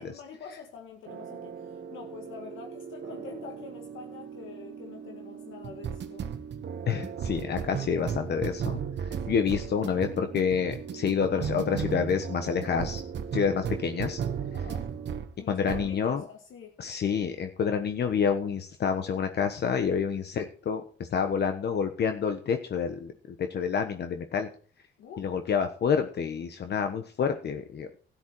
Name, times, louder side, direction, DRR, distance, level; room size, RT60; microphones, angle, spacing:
voice 1, 0.0-6.3 9.3-9.5 14.5-14.9 15.4-16.7 25.0-25.3, left 5 dB, 75° left, 1.9 m, -46 dB
sound 1, 1.1-15.3 15.7-16.0, right 7 dB, 60° right, 1.4 m, -36 dB
voice 2, 6.9-13.0 13.3-14.2 15.5-16.2 16.8-20.8 21.1-24.5 25.2-27.9, left 6 dB, 55° left, 1.3 m, -28 dB
12.5 x 10.5 x 4.7 m
cardioid pair, 90°, 20 cm